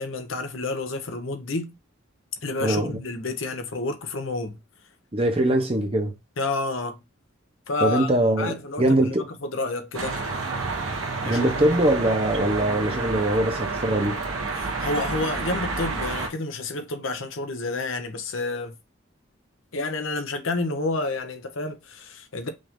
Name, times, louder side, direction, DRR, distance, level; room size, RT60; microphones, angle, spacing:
voice 1, 0.0-1.7 2.4-4.6 6.4-7.0 7.7-8.1 8.4-10.2 11.2-11.5 14.5-18.8 19.7-22.5, left 2 dB, 70° left, 0.9 m, -29 dB
voice 2, 2.6-3.0 5.1-6.1 7.8-9.2 11.3-14.2, right 1 dB, 30° right, 0.8 m, -22 dB
sound 1, 9.9-16.3, right 3 dB, 90° right, 1.3 m, -29 dB
5.2 x 2.7 x 3.6 m
head